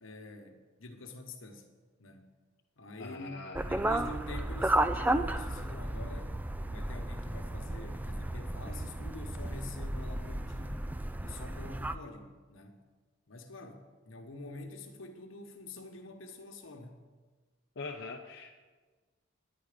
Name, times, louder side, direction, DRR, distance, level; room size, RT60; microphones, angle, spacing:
voice 1, 0.0-1.7 2.0-2.3 2.8-6.3 6.7-10.9 11.2-12.8 13.3-17.0, left 2 dB, 85° left, 5 dB, 1.3 m, -46 dB
voice 2, 3.0-3.7 17.8-18.5, left 3 dB, 65° left, 1 dB, 0.8 m, -42 dB
sound 1, 3.6-12.0, right 1 dB, 10° right, 0.3 m, -33 dB
10.0 x 9.6 x 5.1 m, 1.4 s
head